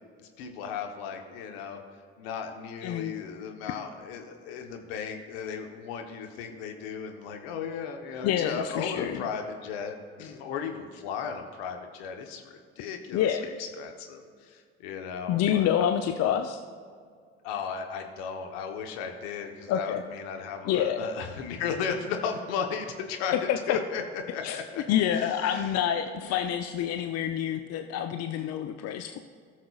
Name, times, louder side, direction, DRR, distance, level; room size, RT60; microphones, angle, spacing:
voice 1, 0.2-1.8 2.2-15.8 17.4-23.3 23.7-24.8 25.1-25.7 26.2-26.3, left 6 dB, 70° left, 5 dB, 1.0 m, -35 dB
voice 2, 8.2-9.2 13.1-13.5 15.3-16.6 19.7-20.0 20.7-21.0 23.5-23.6 24.4-24.6 24.9-29.2, left 10 dB, 55° left, 6 dB, 0.6 m, -27 dB
17.5 x 6.4 x 2.4 m, 2.1 s
figure-of-eight pair, 50°, 31 cm